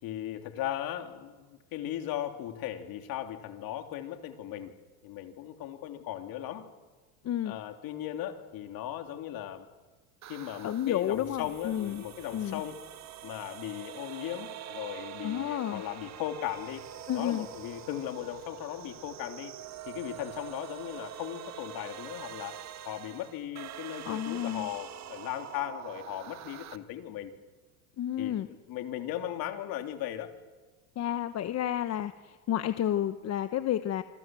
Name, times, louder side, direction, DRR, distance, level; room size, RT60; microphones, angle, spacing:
voice 1, 0.0-4.7 5.0-6.7 7.4-9.7 10.3-12.8 13.2-16.8 17.1-19.5 19.9-22.6 22.8-27.3 28.2-30.3, left 11 dB, 55° left, 6 dB, 3.2 m, -37 dB
voice 2, 7.2-7.6 10.6-12.0 12.3-12.6 15.2-15.8 17.1-17.5 24.1-24.7 28.0-28.5 31.0-34.0, left 11 dB, 35° left, 11 dB, 1.1 m, -31 dB
sound 1, 10.2-26.8, right 11 dB, 40° right, 1.6 m, -45 dB
26.5 x 22.0 x 7.7 m, 1.3 s
supercardioid pair, 110°, 43 cm